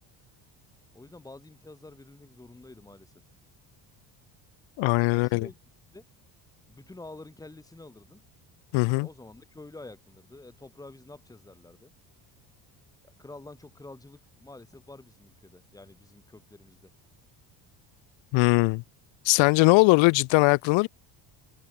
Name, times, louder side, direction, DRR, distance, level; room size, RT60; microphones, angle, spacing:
voice 1, 0.9-3.1 5.1-5.6 5.9-6.0 6.7-8.2 9.0-11.9 13.0-16.9, left 2 dB, 10° left, 3.7 m, -48 dB
voice 2, 4.8-5.5 8.7-9.1 18.3-18.8 19.2-20.9, left 26 dB, 85° left, 0.7 m, -20 dB
cardioid pair, 170°, 44 cm